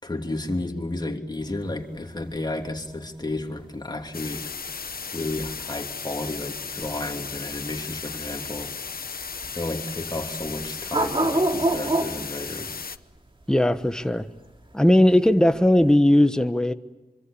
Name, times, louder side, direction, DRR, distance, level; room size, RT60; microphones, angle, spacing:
voice 1, 0.0-4.4 5.1-8.7 9.5-12.8, left 2 dB, 30° left, 4 dB, 3.1 m, -32 dB
sound 1, 1.4-15.9, right 2 dB, 35° right, 3.0 m, -30 dB
sound 2, 4.1-13.0, left 5 dB, 80° left, 1.0 m, -35 dB
voice 2, 13.5-14.3 14.7-16.7, left 1 dB, 5° left, 9 dB, 1.2 m, -18 dB
25.5 x 25.0 x 8.6 m, 1.1 s
wide cardioid pair, 95°, 15 cm